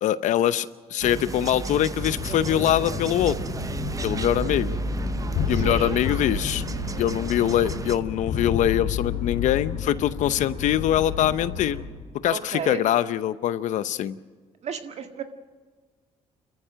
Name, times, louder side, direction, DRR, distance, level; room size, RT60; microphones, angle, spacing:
voice 1, 0.0-3.4 4.0-4.8 5.5-6.6 7.0-11.8 12.2-14.2, left 11 dB, 75° left, 14 dB, 0.8 m, -23 dB
sound 1, 1.0-8.0, right 4 dB, 25° right, 0.7 m, -35 dB
sound 2, 2.0-11.8, left 5 dB, 90° left, 3.8 m, -30 dB
voice 2, 5.5-6.0 12.3-12.8 14.6-15.2, right 7 dB, 60° right, 6 dB, 1.8 m, -33 dB
29.0 x 14.0 x 6.5 m, 1.4 s
cardioid pair, 75°, 13 cm